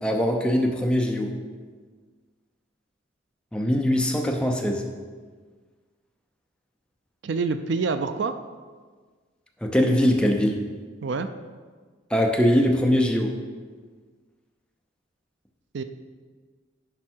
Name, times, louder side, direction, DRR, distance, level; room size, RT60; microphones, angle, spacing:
voice 1, 0.0-1.3 3.5-4.9 9.6-10.6 12.1-13.4, equal, 5° left, 2 dB, 0.6 m, -22 dB
voice 2, 7.2-8.3 11.0-11.3 15.7-15.8, right 4 dB, 65° right, 9 dB, 0.4 m, -26 dB
10.5 x 4.6 x 4.4 m, 1.5 s
head